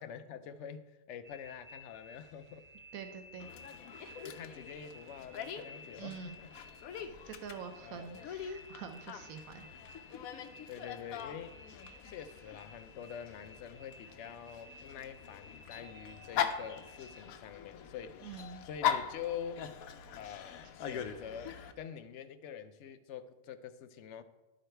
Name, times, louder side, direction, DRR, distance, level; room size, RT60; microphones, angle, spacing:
voice 1, 0.0-2.6 4.2-6.5 7.2-7.3 7.8-8.2 10.7-11.6 12.0-18.2 18.6-19.7 20.2-24.2, left 8 dB, 65° left, 11 dB, 0.8 m, -46 dB
sound 1, 1.2-17.3, left 1 dB, 25° left, 1.2 m, -56 dB
voice 2, 2.9-3.5 6.0-6.4 7.3-9.7 18.2-18.6, right 7 dB, 85° right, 7 dB, 1.1 m, -46 dB
Dog, 3.4-21.7, left 9 dB, 85° left, 1.1 m, -41 dB
11.0 x 5.0 x 4.4 m, 1.1 s
omnidirectional pair, 1.5 m